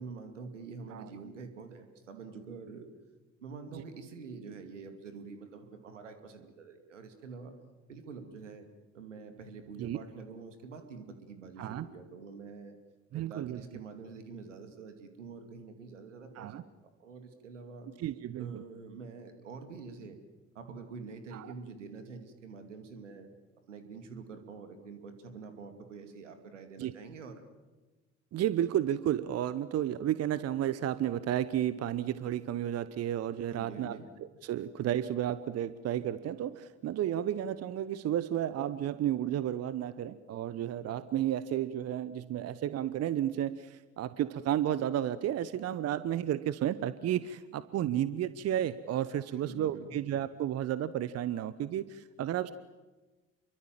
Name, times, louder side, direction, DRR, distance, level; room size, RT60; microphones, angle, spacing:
voice 1, 0.0-2.9 3.4-7.5 7.9-8.7 8.9-12.8 13.1-17.9 18.4-20.2 20.5-23.3 23.7-27.4 33.5-34.1 49.3-49.9, right 4 dB, 75° right, 7 dB, 2.6 m, -46 dB
voice 2, 13.1-13.6 16.3-16.6 18.0-18.6 21.3-21.5 26.8-26.9 28.3-52.5, right 11 dB, 40° right, 15 dB, 1.0 m, -32 dB
29.0 x 23.5 x 7.6 m, 1.2 s
figure-of-eight pair, 50°, 37 cm